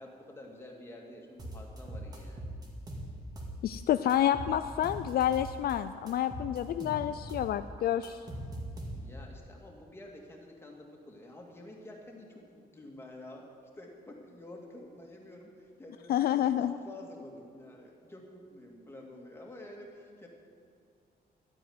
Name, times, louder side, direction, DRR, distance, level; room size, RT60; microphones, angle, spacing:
voice 1, 0.0-2.4 8.9-13.4 13.7-20.3, left 1 dB, 15° left, 0 dB, 2.1 m, -49 dB
sound 1, 1.4-3.8 4.1-5.7 6.1-9.3, right 1 dB, 20° right, 2.2 m, -41 dB
voice 2, 3.6-8.2 16.1-16.7, left 11 dB, 60° left, 11 dB, 0.4 m, -29 dB
12.5 x 9.2 x 9.4 m, 2.3 s
cardioid pair, 170°, 18 cm